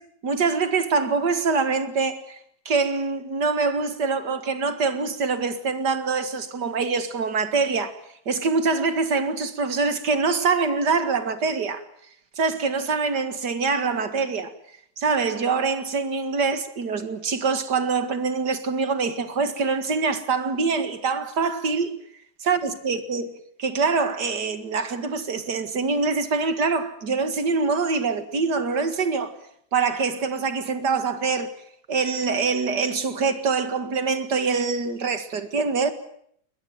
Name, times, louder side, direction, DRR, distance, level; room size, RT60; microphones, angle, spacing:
voice 1, 0.2-2.4 2.7-7.9 8.3-11.8 12.4-14.5 15.0-22.0 22.4-23.3 23.6-29.3 29.7-31.5 31.9-35.9, right 4 dB, 80° right, 2.5 m, -24 dB
22.0 x 21.0 x 9.1 m
omnidirectional pair, 1.8 m